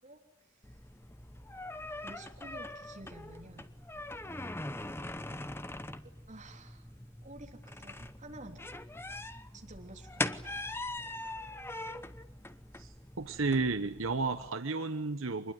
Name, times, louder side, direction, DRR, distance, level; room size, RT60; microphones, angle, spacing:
sound 1, 0.6-14.5, left 2 dB, 10° left, 0.9 m, -42 dB
voice 1, 2.0-3.7 6.0-6.9 7.2-8.7 9.5-10.5, right 2 dB, 40° right, 2 dB, 3.6 m, -51 dB
voice 2, 13.2-15.5, right 3 dB, 75° right, 9 dB, 1.0 m, -32 dB
25.0 x 21.0 x 9.5 m, 0.85 s
head